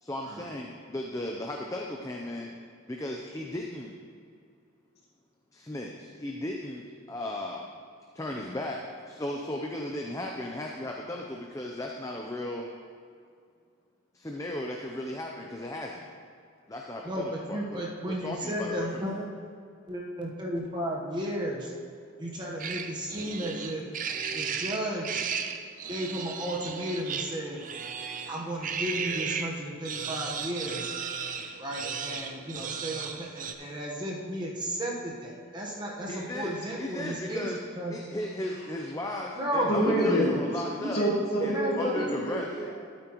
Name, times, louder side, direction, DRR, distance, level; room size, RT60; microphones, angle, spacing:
voice 1, 0.0-2.6 2.9-3.9 5.5-7.7 8.1-8.8 9.1-12.7 14.1-16.1 16.7-19.0 36.1-37.6 37.9-41.0 41.4-42.5, left 1 dB, 15° left, 0 dB, 0.5 m, -36 dB
voice 2, 17.5-19.3 19.9-21.7 22.2-23.8 24.3-25.3 25.9-27.6 28.3-30.9 31.6-37.5 37.8-37.9 39.4-40.3 40.8-41.1 41.4-42.2, equal, 20° right, -2 dB, 1.1 m, -33 dB
sound 1, 22.6-29.5 29.8-33.5, right 6 dB, 40° right, 0.5 m, -35 dB
voice 3, 39.7-40.6 40.9-42.7, equal, 50° left, -4 dB, 2.2 m, -27 dB
12.5 x 8.8 x 3.0 m, 2.3 s
head